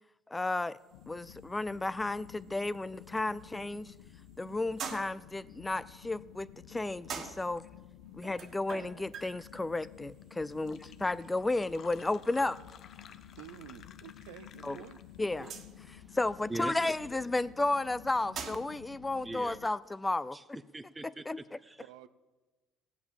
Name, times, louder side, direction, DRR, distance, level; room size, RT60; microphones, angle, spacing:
voice 1, 0.3-0.8 1.1-3.9 4.4-7.7 8.1-12.6 14.6-14.8 15.2-15.5 16.1-20.4 21.3-21.4, left 2 dB, 15° left, 0.4 m, -33 dB
sound 1, 0.7-18.9, right 6 dB, 55° right, 1.6 m, -49 dB
sound 2, 0.9-19.7, left 12 dB, 90° left, 0.6 m, -53 dB
Fill (with liquid), 10.2-10.3 10.5-15.3, left 8 dB, 55° left, 0.8 m, -55 dB
voice 2, 13.4-15.5 21.8-22.1, right 11 dB, 90° right, 0.6 m, -50 dB
voice 3, 16.5-17.2 19.2-19.6 20.3-20.4 20.7-21.2 21.6-21.9, right 2 dB, 15° right, 0.7 m, -41 dB
16.0 x 8.5 x 7.4 m
supercardioid pair, 80°, 0 cm